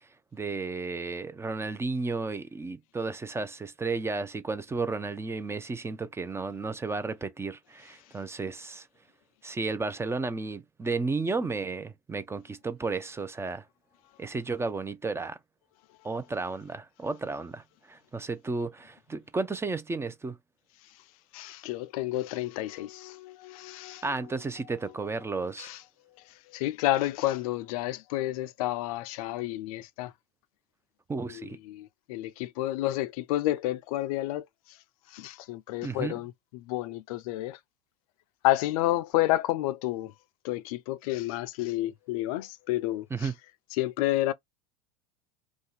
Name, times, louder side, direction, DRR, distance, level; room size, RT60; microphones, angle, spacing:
voice 1, 0.3-8.9 9.4-13.6 14.2-15.4 16.0-20.4 24.0-25.7 31.1-31.6 35.8-36.2 43.1-43.3, right 3 dB, 15° right, 0.6 m, -33 dB
voice 2, 21.3-24.4 25.6-25.8 26.5-30.1 31.3-34.4 35.1-37.6 38.4-40.1 40.4-43.3 43.7-44.3, left 16 dB, 65° left, 0.4 m, -30 dB
2.6 x 2.3 x 3.9 m
hypercardioid pair, 90°, 20 cm